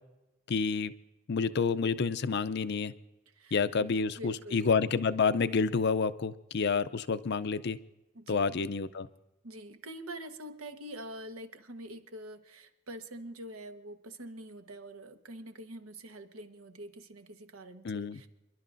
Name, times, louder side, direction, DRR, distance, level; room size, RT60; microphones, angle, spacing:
voice 1, 0.5-0.9 1.3-2.9 3.5-7.8 8.3-9.1 17.8-18.2, left 5 dB, 55° left, 13 dB, 0.5 m, -29 dB
voice 2, 3.3-3.9 4.2-4.7 8.1-8.6 9.4-18.3, right 1 dB, 85° right, 6 dB, 1.2 m, -45 dB
28.5 x 11.5 x 2.6 m, 0.98 s
head